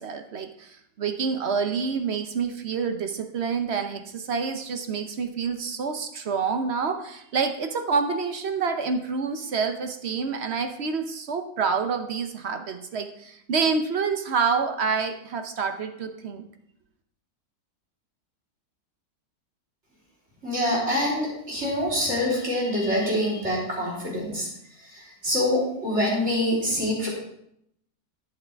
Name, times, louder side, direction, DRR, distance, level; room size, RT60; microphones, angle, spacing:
voice 1, 0.0-16.4, right 5 dB, 60° right, 7 dB, 0.7 m, -27 dB
voice 2, 20.4-24.5 24.8-27.1, left 1 dB, 40° right, -5 dB, 3.8 m, -25 dB
11.0 x 8.9 x 3.4 m, 0.75 s
omnidirectional pair, 1.9 m